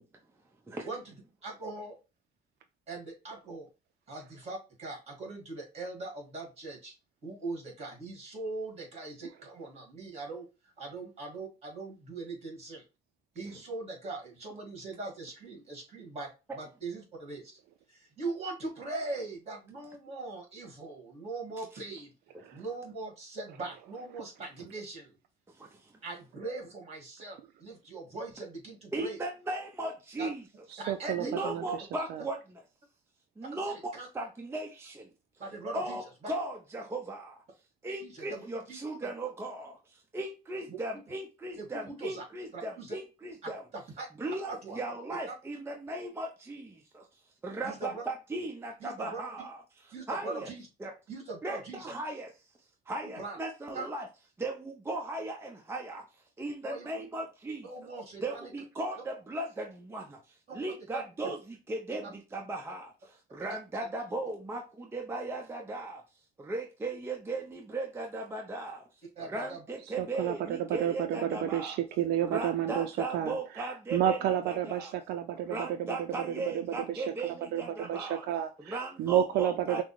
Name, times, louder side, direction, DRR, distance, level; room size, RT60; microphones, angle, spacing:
voice 1, 1.4-1.9 2.9-3.7 4.1-6.9 7.2-10.5 10.8-12.8 13.3-17.5 17.9-22.1 22.5-25.2 26.0-29.2 30.2-30.3 30.8-31.5 33.4-34.1 35.4-36.0 36.2-36.3 38.0-39.1 40.7-40.8 41.6-42.2 42.5-43.0 43.4-43.5 44.0-44.1 44.5-44.8 45.3-45.4 47.6-48.0 48.8-49.2 49.9-50.7 51.1-51.9 53.0-53.4 53.7-53.9 56.6-56.9 57.6-58.5 60.5-60.6 60.9-61.3 62.0-62.2 63.4-63.9 69.2-69.6, right 3 dB, 40° right, 0 dB, 2.2 m, -41 dB
voice 2, 25.5-25.9 28.9-30.4 31.2-32.6 33.4-35.1 35.7-37.4 37.8-43.6 44.1-49.6 50.1-50.5 50.8-50.9 51.4-52.3 52.9-54.1 54.4-56.0 56.4-57.7 58.2-60.2 60.5-66.0 66.4-68.9 69.2-71.8 72.2-74.2 74.5-75.0 75.5-78.2 78.6-79.8, right 2 dB, 15° right, 2 dB, 0.6 m, -37 dB
voice 3, 30.7-32.2 70.0-77.0 77.5-79.8, right 10 dB, 75° right, 8 dB, 0.4 m, -31 dB
6.0 x 2.1 x 3.1 m, 0.30 s
cardioid pair, 110°, 17 cm